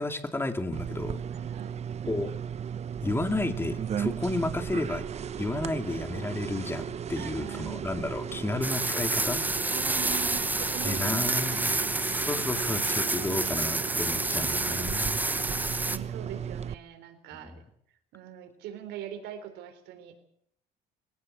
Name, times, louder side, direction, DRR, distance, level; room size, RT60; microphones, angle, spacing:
voice 1, 0.0-1.2 2.1-2.3 3.0-5.1 5.4-9.4 10.8-11.7 12.0-15.2 17.4-17.5, left 2 dB, 15° left, 7 dB, 2.4 m, -32 dB
sound 1, 0.7-16.7, right 8 dB, 40° right, 0.8 m, -36 dB
voice 2, 1.3-1.8 7.1-7.8 9.7-11.9 13.2-13.5 14.3-17.6 18.1-20.1, right 11 dB, 85° right, 7 dB, 4.0 m, -42 dB
sound 2, 5.9-16.2, left 6 dB, 60° left, 3.5 m, -52 dB
sound 3, 8.6-16.0, right 2 dB, 10° right, 1.1 m, -29 dB
21.5 x 17.5 x 7.9 m, 0.72 s
cardioid pair, 110°, 17 cm